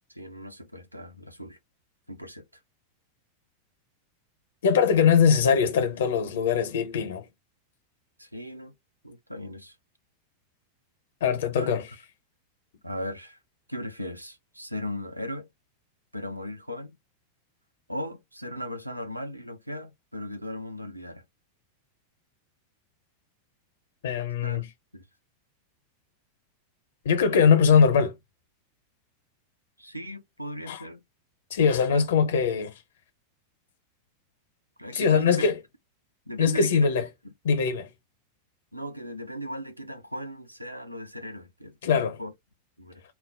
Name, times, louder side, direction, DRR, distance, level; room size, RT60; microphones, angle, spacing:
voice 1, 0.1-1.6 2.1-2.4 8.2-8.7 9.0-9.8 11.6-11.7 12.8-13.4 13.7-15.5 16.1-17.0 17.9-21.2 24.4-24.6 24.9-25.0 29.8-31.0 31.8-32.1 34.8-35.5 36.3-36.9 37.2-37.3 38.7-42.3 42.8-43.0, equal, 90° right, 0.5 m, -37 dB
voice 2, 4.6-7.3 11.2-11.8 24.0-24.7 27.0-28.2 30.7-30.8 31.5-32.7 34.9-35.6 36.4-37.1 37.4-37.9 41.8-42.2, left 6 dB, 60° left, 0.6 m, -22 dB
2.2 x 2.0 x 3.4 m
figure-of-eight pair, 90°, 0 cm